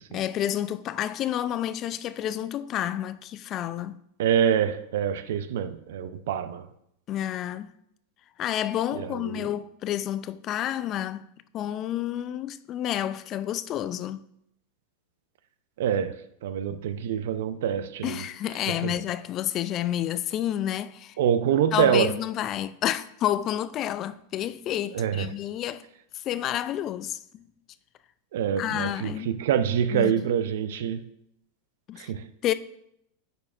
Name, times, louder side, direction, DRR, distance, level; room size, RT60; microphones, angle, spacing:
voice 1, 0.1-4.0 7.1-7.7 8.4-11.3 11.5-14.3 18.0-21.2 21.7-25.8 26.1-27.5 28.6-29.4 29.9-30.3 31.9-32.1 32.4-32.5, left 11 dB, 40° left, 0.3 m, -30 dB
voice 2, 4.2-6.6 8.9-9.5 15.8-16.2 16.4-18.2 18.8-18.9 21.2-22.1 24.9-25.3 28.3-29.1 29.4-31.0 32.0-32.2, right 8 dB, 70° right, 0.5 m, -25 dB
9.1 x 5.3 x 2.4 m
hypercardioid pair, 105°, 0 cm